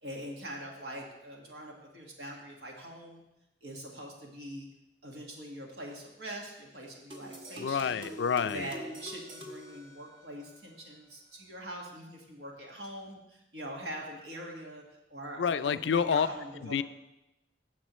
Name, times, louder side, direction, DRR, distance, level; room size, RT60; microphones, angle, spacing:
voice 1, 0.0-3.2 3.6-4.7 5.0-8.1 8.4-14.8 15.1-16.8, right 1 dB, 65° right, -1 dB, 1.7 m, -43 dB
sound 1, 7.1-10.6, equal, 30° right, 1.1 m, -45 dB
voice 2, 7.6-8.7 15.4-16.3 16.6-16.8, left 6 dB, 90° left, 13 dB, 0.4 m, -28 dB
16.0 x 7.4 x 3.1 m, 0.90 s
head